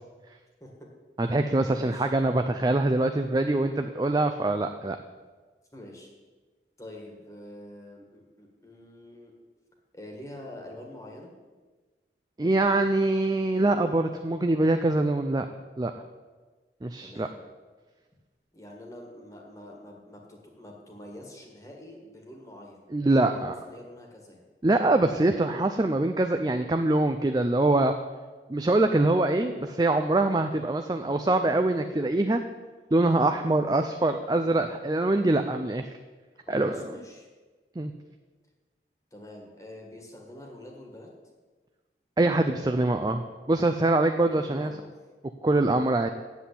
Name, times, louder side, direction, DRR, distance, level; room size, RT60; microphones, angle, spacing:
voice 1, 1.2-5.0 12.4-15.5 15.8-15.9 16.8-17.3 22.9-23.5 24.6-27.9 28.5-32.4 32.9-35.8 36.5-36.8 37.8-37.9 42.2-43.2 43.5-44.7 45.4-46.1, right 2 dB, 25° right, 6 dB, 0.4 m, -24 dB
voice 2, 1.7-2.1 5.7-6.1 6.8-9.3 9.9-11.3 17.0-17.4 18.5-22.8 23.1-24.4 36.5-37.3 39.1-41.1 44.2-44.9, left 1 dB, 20° left, 0 dB, 1.7 m, -46 dB
8.2 x 7.4 x 8.4 m, 1.3 s
head